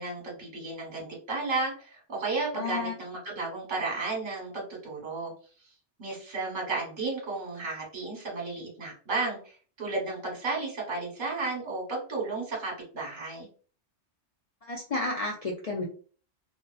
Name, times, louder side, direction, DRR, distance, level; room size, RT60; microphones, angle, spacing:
voice 1, 0.0-5.3 6.0-13.5, right 3 dB, 45° right, -2 dB, 1.1 m, -33 dB
voice 2, 2.5-2.9 14.6-15.8, left 3 dB, 65° left, -1 dB, 0.3 m, -31 dB
2.4 x 2.2 x 2.3 m, 0.41 s
omnidirectional pair, 1.1 m